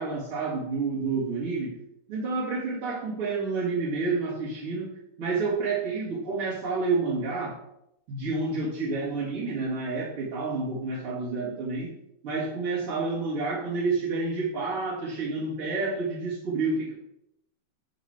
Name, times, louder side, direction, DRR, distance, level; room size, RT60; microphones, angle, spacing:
voice 1, 0.0-1.7 2.1-4.9 5.2-7.6 8.1-11.9 12.2-16.9, right 3 dB, 45° right, -9 dB, 2.4 m, -29 dB
10.0 x 4.2 x 4.4 m, 0.79 s
omnidirectional pair, 4.5 m